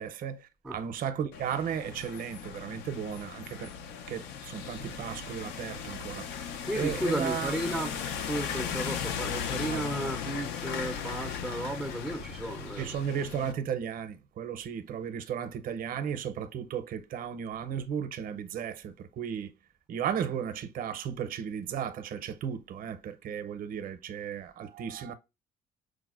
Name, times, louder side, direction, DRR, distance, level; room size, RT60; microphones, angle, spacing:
voice 1, 0.0-3.7 4.1-6.3 6.7-7.5 9.7-9.8 12.8-19.5 19.9-25.1, right 8 dB, 55° right, 0.5 m, -35 dB
sound 1, 1.3-13.5, left 7 dB, 90° left, 0.5 m, -37 dB
voice 2, 6.6-12.9, right 1 dB, ahead, 0.4 m, -34 dB
4.8 x 2.1 x 2.3 m
cardioid pair, 110°, 17 cm